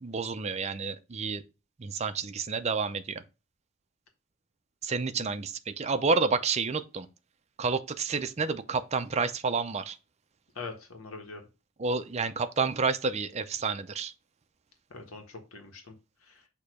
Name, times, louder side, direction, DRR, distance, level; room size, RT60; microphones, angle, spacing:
voice 1, 0.0-1.4 1.8-3.2 4.8-7.1 7.6-10.0 11.8-14.1, right 4 dB, 30° right, 0.5 m, -29 dB
voice 2, 10.5-11.4 14.9-15.9 16.3-16.4, left 4 dB, 75° left, 1.5 m, -43 dB
6.5 x 2.9 x 5.0 m
head